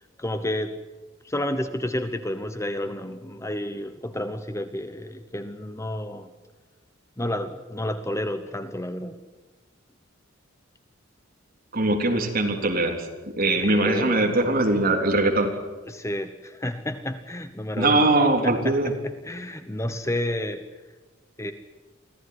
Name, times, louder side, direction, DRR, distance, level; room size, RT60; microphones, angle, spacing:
voice 1, 0.2-0.7 1.2-6.3 7.2-9.2 13.6-14.2 15.9-18.0 18.4-18.8 19.2-20.6 21.4-21.5, left 1 dB, 15° left, 9 dB, 1.0 m, -30 dB
voice 2, 11.7-15.5 17.8-18.9, right 2 dB, 45° right, 2 dB, 3.6 m, -22 dB
25.0 x 15.5 x 9.8 m, 1.2 s
head